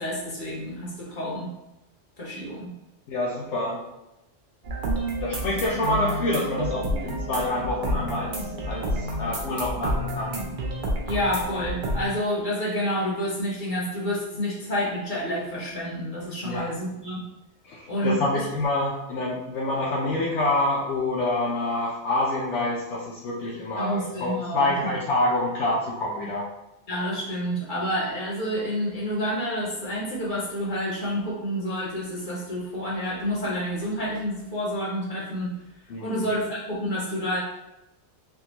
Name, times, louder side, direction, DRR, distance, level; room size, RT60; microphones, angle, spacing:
voice 1, 0.0-1.5 2.2-2.7 11.0-17.2 17.9-18.4 23.8-25.0 26.9-35.6 36.0-37.4, equal, 45° left, -4 dB, 0.9 m, -29 dB
voice 2, 3.1-3.8 5.2-10.4 16.4-16.7 17.6-26.4 35.9-36.2, left 2 dB, 75° left, -6 dB, 0.9 m, -27 dB
sound 1, 4.6-12.1, right 1 dB, 50° right, 0.7 m, -29 dB
3.5 x 2.3 x 2.9 m, 0.92 s
omnidirectional pair, 1.2 m